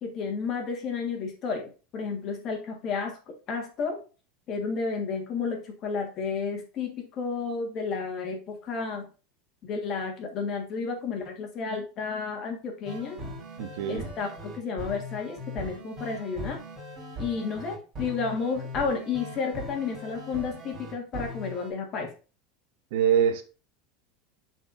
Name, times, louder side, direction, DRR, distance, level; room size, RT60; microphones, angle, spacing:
voice 1, 0.0-4.0 4.5-9.1 9.6-13.2 13.9-16.6 17.2-22.1, left 5 dB, 30° left, 1.6 m, -32 dB
sound 1, 12.8-21.7, equal, 25° right, 4.2 m, -40 dB
voice 2, 13.6-14.0 22.9-23.4, right 9 dB, 65° right, 0.9 m, -24 dB
11.0 x 4.4 x 2.6 m
supercardioid pair, 170°, 0 cm